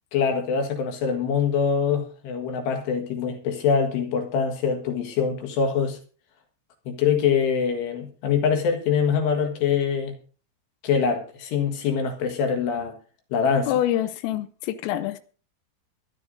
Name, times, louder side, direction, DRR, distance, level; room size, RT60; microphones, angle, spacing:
voice 1, 0.1-6.0 6.9-10.1 10.8-12.9 13.3-13.7, left 6 dB, 65° left, 3.4 m, -24 dB
voice 2, 13.7-15.2, left 12 dB, 85° left, 3.4 m, -26 dB
23.5 x 11.0 x 2.7 m
omnidirectional pair, 5.8 m